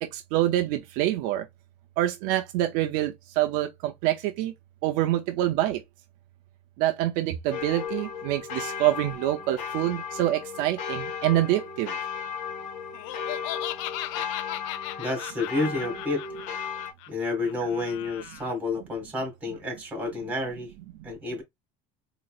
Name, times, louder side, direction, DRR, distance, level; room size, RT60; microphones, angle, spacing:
voice 1, 0.1-1.4 2.0-4.5 4.8-5.8 6.8-12.0, right 14 dB, 60° right, 0.7 m, -26 dB
sound 1, 7.5-16.9, left 7 dB, 50° left, 1.0 m, -35 dB
Laughter, 12.9-18.5, left 15 dB, 75° left, 0.4 m, -37 dB
voice 2, 15.0-16.2 17.1-20.7 21.0-21.4, left 2 dB, 10° right, 2.2 m, -30 dB
4.2 x 3.0 x 2.4 m
cardioid pair, 170°, 16 cm